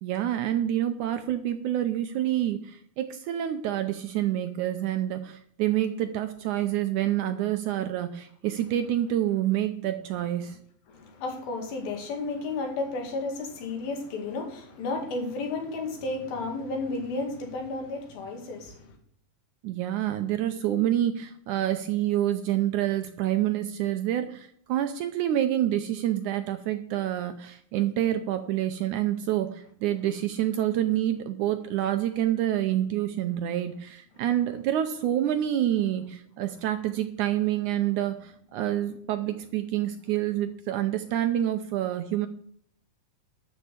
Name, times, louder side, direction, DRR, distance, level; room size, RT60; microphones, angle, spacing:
voice 1, 0.0-10.6 19.6-42.3, right 12 dB, 80° right, 1.9 m, -27 dB
voice 2, 10.9-19.0 34.2-34.3, left 3 dB, 80° left, 4.1 m, -33 dB
12.5 x 5.6 x 8.3 m
omnidirectional pair, 4.1 m